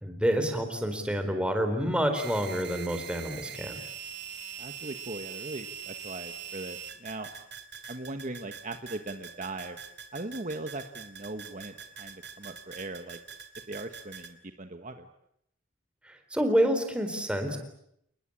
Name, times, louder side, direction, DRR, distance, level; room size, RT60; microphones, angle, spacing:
voice 1, 0.0-3.8 16.0-17.6, equal, 5° right, 6 dB, 4.1 m, -28 dB
sound 1, 2.1-14.3, right 8 dB, 60° right, 2.6 m, -43 dB
voice 2, 4.6-7.3 7.9-9.8 10.1-13.2 13.7-15.1, right 2 dB, 40° right, 7 dB, 1.4 m, -39 dB
29.5 x 20.5 x 8.7 m, 0.76 s
head